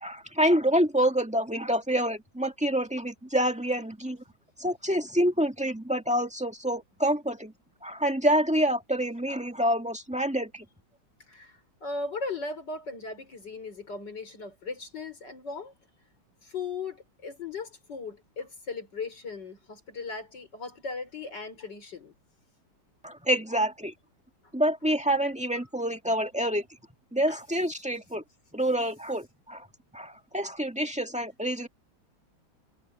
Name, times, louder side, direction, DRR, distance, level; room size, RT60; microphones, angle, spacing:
voice 1, 0.0-4.2 4.6-7.5 7.8-10.6 23.0-23.9 24.5-26.6 27.1-28.2 28.5-29.7 29.9-31.7, equal, 5° right, 1.7 m, -27 dB
voice 2, 11.3-15.7 16.4-22.1 27.3-27.4, left 4 dB, 55° left, 5.3 m, -37 dB
omnidirectional pair, 2.2 m